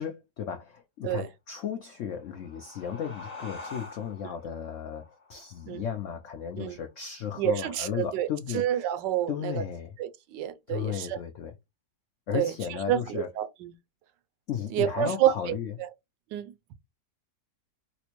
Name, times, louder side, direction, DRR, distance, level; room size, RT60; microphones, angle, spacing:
voice 1, 0.0-8.9 9.3-10.0 10.7-11.5 12.3-13.3 14.5-15.7, left 8 dB, 80° left, 0.6 m, -35 dB
sound 1, 2.0-7.2, left 3 dB, 30° left, 0.9 m, -47 dB
voice 2, 7.4-8.3 8.5-9.6 10.0-11.2 12.3-13.7 14.7-15.9 16.3-16.5, right 12 dB, 85° right, 1.2 m, -29 dB
4.2 x 2.1 x 2.9 m
omnidirectional pair, 1.9 m